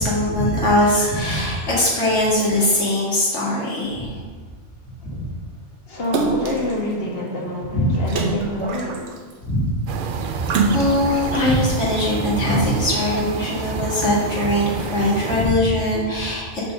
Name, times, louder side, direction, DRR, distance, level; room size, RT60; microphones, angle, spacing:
voice 1, 0.0-4.1 5.0-5.3 7.7-7.9 9.4-9.7 10.2-16.5, left 1 dB, 80° left, -5 dB, 2.5 m, -21 dB
voice 2, 5.9-9.1 10.2-10.5, left 1 dB, 55° left, -1 dB, 1.7 m, -27 dB
Splash splatter, 6.1-6.7 8.1-9.3 10.5-11.3 11.8-11.9, right 4 dB, 80° right, 1.2 m, -23 dB
sound 1, 9.9-15.5, right 6 dB, 60° right, 0.6 m, -29 dB
7.2 x 4.5 x 6.3 m, 1.4 s
omnidirectional pair, 1.2 m